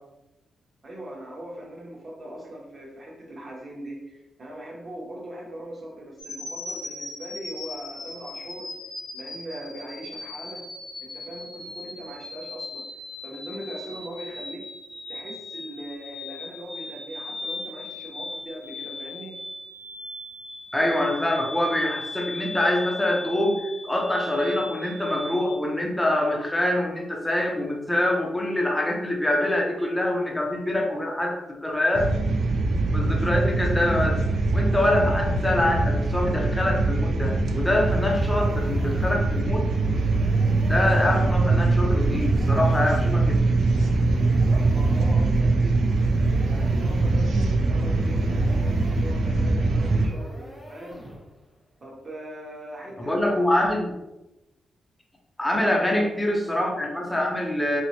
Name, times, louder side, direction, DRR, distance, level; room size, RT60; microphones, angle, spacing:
voice 1, 0.8-8.7 9.1-10.7 11.0-12.9 13.2-14.7 15.1-19.4 44.3-46.0 46.4-51.0 51.8-53.6 55.5-56.2, right 1 dB, 30° right, -3 dB, 1.0 m, -40 dB
sound 1, 6.2-25.6, left 2 dB, 90° left, 0.9 m, -38 dB
voice 2, 20.7-32.1 32.9-34.2 34.5-39.7 40.7-43.4 53.0-53.9 55.4-57.8, left 1 dB, 5° left, -1 dB, 0.5 m, -25 dB
sound 2, 31.9-50.1, right 2 dB, 70° right, 0.4 m, -22 dB
sound 3, 37.4-51.5, right 1 dB, 10° right, 1.0 m, -41 dB
4.4 x 2.0 x 2.8 m, 0.99 s
wide cardioid pair, 160°, 0 cm